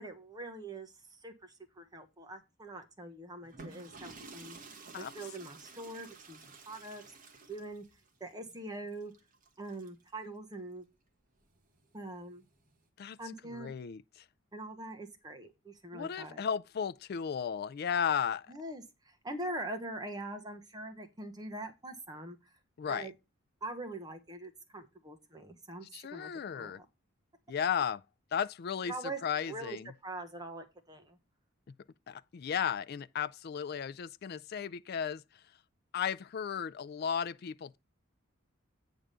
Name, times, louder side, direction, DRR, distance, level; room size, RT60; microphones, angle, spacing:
voice 1, 0.0-4.6 5.0-7.0 7.5-7.8 8.2-9.1 9.6-10.8 11.9-12.4 13.2-13.7 14.5-16.4 18.5-22.4 22.9-23.1 23.6-25.9 26.1-26.8 28.8-29.2 29.5-29.8 30.0-31.2, right 2 dB, 20° right, 1.1 m, -43 dB
sound 1, 3.4-10.1 11.4-12.8, right 3 dB, 40° right, 1.4 m, -52 dB
voice 2, 13.5-14.2 15.9-18.5 22.8-23.1 25.9-26.8 27.5-28.0 28.3-28.9 29.2-29.9 32.1-35.2 35.9-37.8, left 7 dB, 50° left, 0.3 m, -35 dB
8.8 x 3.6 x 6.7 m
head